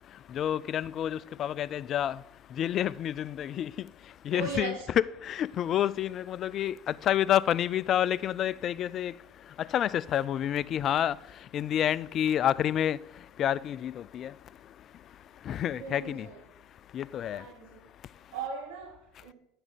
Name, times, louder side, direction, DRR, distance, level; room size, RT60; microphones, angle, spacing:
voice 1, 0.0-16.3 16.6-17.5 18.0-18.3, left 10 dB, 50° left, 0.3 m, -30 dB
voice 2, 4.3-4.9 15.7-16.4 17.3-17.8 18.3-19.3, right 4 dB, 80° right, 2.2 m, -38 dB
9.9 x 5.1 x 7.4 m
hypercardioid pair, 80°, 0 cm